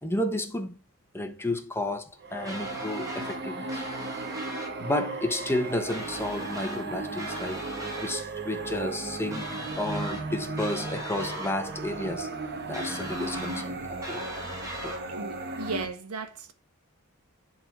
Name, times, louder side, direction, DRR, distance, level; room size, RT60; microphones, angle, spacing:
voice 1, 0.0-0.8 1.1-3.8 4.8-7.6 8.0-9.5 9.7-12.3 12.7-14.2 14.8-15.0, left 1 dB, 10° left, 1.3 m, -32 dB
sound 1, 2.2-15.9, right 3 dB, 50° right, 1.5 m, -36 dB
sound 2, 2.5-3.4 3.7-4.7 5.9-6.8 7.2-8.1 9.3-10.2 10.6-11.6 12.7-13.7 14.0-15.0, equal, 15° right, 2.7 m, -39 dB
voice 2, 15.1-16.5, right 4 dB, 80° right, 1.4 m, -36 dB
11.0 x 4.1 x 6.1 m
head